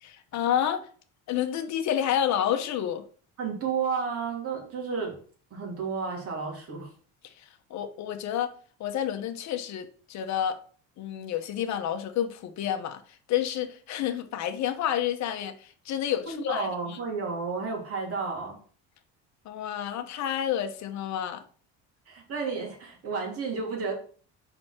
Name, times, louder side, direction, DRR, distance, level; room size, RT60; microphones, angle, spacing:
voice 1, 0.0-0.8 1.3-3.0 7.2-7.3 7.7-8.5 8.8-10.6 11.0-13.0 13.3-17.0 19.4-21.4, left 10 dB, 55° left, 1.1 m, -29 dB
voice 2, 3.4-5.2 5.5-6.9 16.2-18.6 22.1-23.9, right 5 dB, 45° right, 3.0 m, -32 dB
5.5 x 4.2 x 6.1 m
cardioid pair, 135°, 33 cm